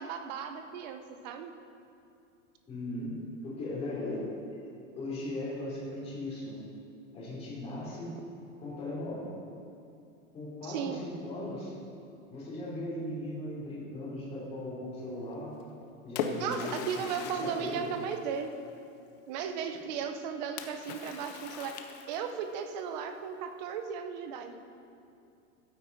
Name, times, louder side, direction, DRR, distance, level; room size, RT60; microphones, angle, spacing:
voice 1, 0.0-1.5 10.6-11.0 16.4-18.5 19.3-21.7 22.1-24.5, right 7 dB, 30° right, 7 dB, 0.6 m, -36 dB
voice 2, 2.7-3.1 3.4-4.2 5.0-6.6 7.1-8.2 8.6-9.3 10.3-11.7 12.3-15.5 16.0-17.1 17.4-17.9, left 1 dB, 15° left, -7 dB, 3.0 m, -38 dB
Splash splatter, 15.6-18.8 20.6-22.5, left 6 dB, 30° left, 0.5 m, -40 dB
13.0 x 8.8 x 4.0 m, 2.6 s
supercardioid pair, 170°, 41 cm